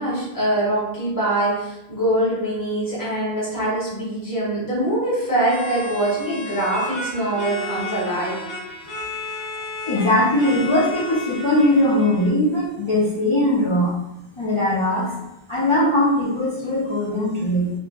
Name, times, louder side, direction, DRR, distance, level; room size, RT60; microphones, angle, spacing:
voice 1, 0.0-8.4, right 1 dB, 20° left, -8 dB, 1.2 m, -23 dB
sound 1, 5.4-12.3, left 2 dB, 85° left, 1.0 m, -33 dB
voice 2, 9.9-13.9 14.4-15.1 15.5-17.7, left 1 dB, 35° left, -8 dB, 0.5 m, -20 dB
3.8 x 2.4 x 2.2 m, 0.90 s
omnidirectional pair, 1.0 m